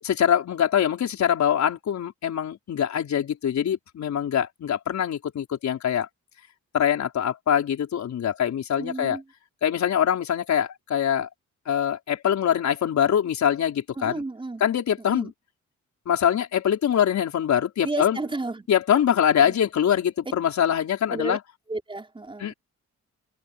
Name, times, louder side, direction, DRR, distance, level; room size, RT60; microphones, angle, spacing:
voice 1, 0.0-6.1 6.7-9.2 9.6-11.3 11.6-14.2 14.6-15.3 16.0-18.2 18.7-21.4 22.4-22.5, left 9 dB, 70° left, 5.0 m, -23 dB
voice 2, 8.8-9.2 14.0-14.6 15.1-15.3 17.8-18.7 19.4-19.5 21.1-21.4 21.7-22.5, right 2 dB, 15° right, 5.1 m, -32 dB
cardioid pair, 120°, 29 cm